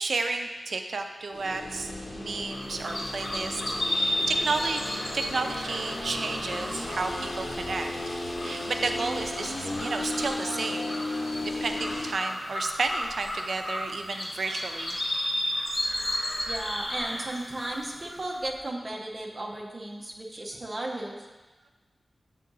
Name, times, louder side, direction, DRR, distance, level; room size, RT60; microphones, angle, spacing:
voice 1, 0.0-4.8 5.1-7.9 8.4-11.0 11.4-15.0, right 3 dB, 85° right, 5 dB, 0.5 m, -32 dB
sound 1, 1.3-12.1, left 2 dB, 75° left, 1.1 m, -35 dB
sound 2, 2.5-18.5, left 1 dB, 30° left, 1.1 m, -34 dB
voice 2, 16.5-21.2, right 1 dB, 35° right, -1 dB, 0.8 m, -35 dB
7.5 x 3.7 x 4.0 m, 1.3 s
wide cardioid pair, 115°, 0 cm